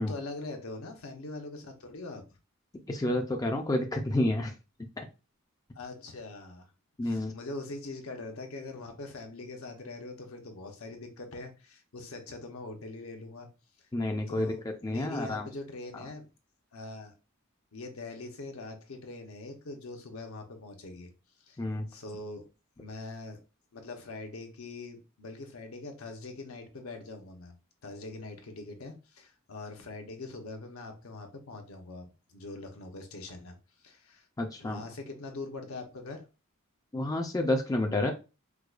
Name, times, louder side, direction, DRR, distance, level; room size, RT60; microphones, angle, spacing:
voice 1, 0.0-2.4 5.7-6.7 7.0-13.5 14.3-16.3 16.7-17.1 17.7-21.1 21.4-21.6 21.9-22.5 22.8-23.4 23.7-27.5 27.8-33.6 33.8-34.3 34.6-36.3, left 2 dB, 75° left, 0.8 m, -42 dB
voice 2, 2.9-4.5 5.0-5.1 7.0-7.3 13.9-14.6 14.8-15.5 21.6-21.9 34.4-34.8 36.9-38.1, left 1 dB, 15° left, 0.3 m, -29 dB
4.6 x 2.2 x 2.4 m
head